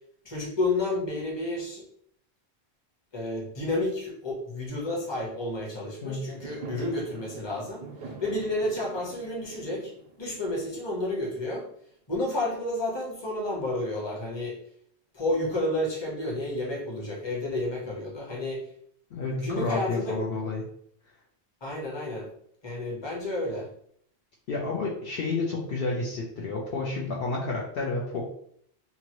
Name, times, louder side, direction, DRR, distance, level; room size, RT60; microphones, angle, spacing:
voice 1, 0.2-1.8 3.1-7.8 8.2-9.9 10.2-11.6 12.1-14.6 15.1-18.6 19.3-20.2 21.6-22.3 22.6-23.7, left 1 dB, 25° left, -3 dB, 0.9 m, -30 dB
Fireworks, 6.3-11.5, right 4 dB, 55° right, 0.6 m, -44 dB
voice 2, 19.1-20.6 24.5-28.2, left 3 dB, 65° left, -3 dB, 0.8 m, -30 dB
2.7 x 2.6 x 2.9 m, 0.66 s
omnidirectional pair, 1.1 m